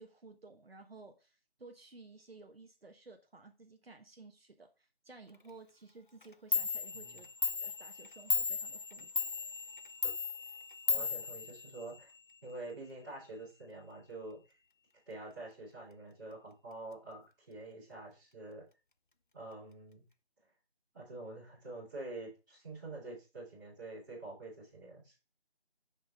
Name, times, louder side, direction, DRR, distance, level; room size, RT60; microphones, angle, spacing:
voice 1, 0.0-7.3 7.6-9.1, right 3 dB, 65° right, 5 dB, 1.2 m, -55 dB
Clock, 6.2-6.3 6.5-12.2, left 4 dB, 50° left, 0.5 m, -36 dB
voice 2, 10.9-12.1 12.4-14.4 15.1-18.7 19.3-20.0 20.9-25.2, right 2 dB, ahead, -23 dB, 2.3 m, -47 dB
7.3 x 5.5 x 3.6 m, 0.29 s
figure-of-eight pair, 180°, 33 cm